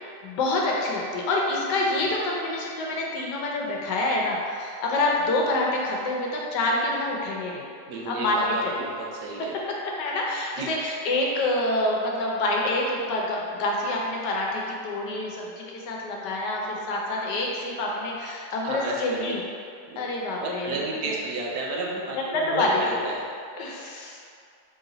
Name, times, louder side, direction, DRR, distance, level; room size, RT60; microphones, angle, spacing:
voice 1, 0.2-7.7 8.1-8.9 10.0-19.4 20.0-21.1 22.1-22.8 23.6-24.2, left 2 dB, 75° left, -2 dB, 1.2 m, -27 dB
voice 2, 7.9-9.5 10.6-10.7 18.6-19.3 19.9-20.0 20.4-23.2, right 2 dB, 75° right, -2 dB, 1.1 m, -32 dB
4.0 x 3.1 x 3.8 m, 2.4 s
omnidirectional pair, 1.9 m